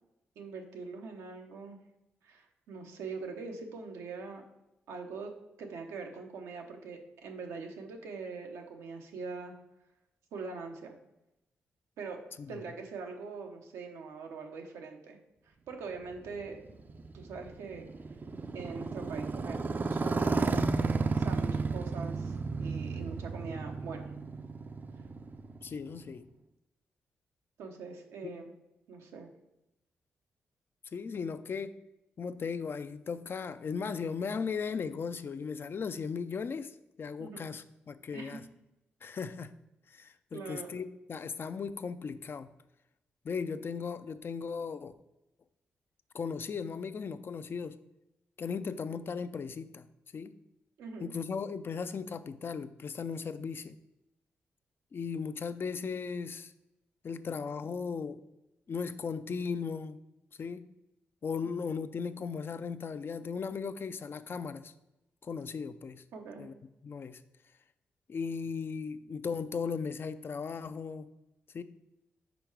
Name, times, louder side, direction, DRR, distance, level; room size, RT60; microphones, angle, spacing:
voice 1, 0.4-1.8 2.2-4.4 4.9-5.3 5.6-9.5 10.3-11.0 12.0-12.2 12.5-15.2 15.4-16.6 17.1-17.8 18.5-20.5 21.2-24.1 27.6-28.5 28.9-29.3 37.2-37.4 38.1-38.4 40.3-40.7 50.8-51.1 66.1-66.5, right 4 dB, 90° right, 3 dB, 0.8 m, -42 dB
Motorcycle, 16.1-26.1, right 4 dB, 40° right, 0.5 m, -33 dB
voice 2, 25.6-26.3 28.2-28.3 30.9-31.8 32.2-36.7 37.0-38.4 39.0-39.5 39.9-42.5 43.2-44.9 46.1-47.8 48.4-49.9 50.1-50.3 51.0-53.8 54.9-56.5 57.0-58.2 58.7-60.0 60.4-60.7 61.2-64.7 65.2-66.0 66.4-66.5 66.8-67.2 68.1-71.1 71.5-71.6, left 5 dB, 50° left, 12 dB, 0.4 m, -37 dB
5.2 x 4.5 x 4.6 m, 0.91 s
supercardioid pair, 55°, 5 cm